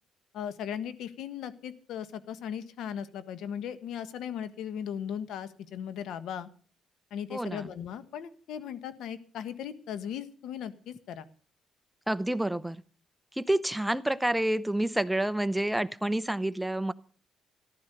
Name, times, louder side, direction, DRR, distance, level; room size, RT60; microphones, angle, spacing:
voice 1, 0.3-6.5 7.1-11.2, left 9 dB, 80° left, 13 dB, 1.3 m, -37 dB
voice 2, 7.3-7.7 12.1-12.8 13.4-16.9, right 1 dB, 5° right, 14 dB, 0.8 m, -28 dB
14.5 x 11.5 x 6.7 m, 0.42 s
cardioid pair, 90°, 0 cm